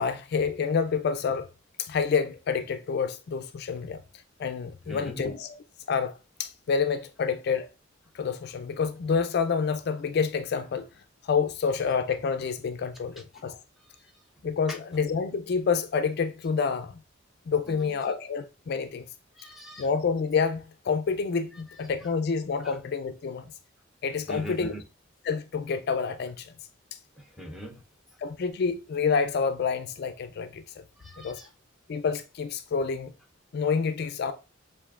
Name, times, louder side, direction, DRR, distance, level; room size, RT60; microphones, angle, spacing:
voice 1, 0.0-1.5 1.8-4.0 4.4-5.6 5.9-7.7 8.1-10.9 11.2-13.6 14.4-17.0 17.5-19.1 19.8-23.5 24.0-24.7 25.2-26.5 28.2-30.6 31.2-31.4 31.9-33.1 33.5-34.3, left 5 dB, 55° left, 0.3 m, -28 dB
voice 2, 4.8-5.3 14.7-14.8 17.7-18.0 19.4-19.9 22.6-22.7 24.3-24.8 27.2-27.8 31.0-31.5, right 1 dB, ahead, 0.7 m, -41 dB
6.9 x 2.5 x 2.4 m
head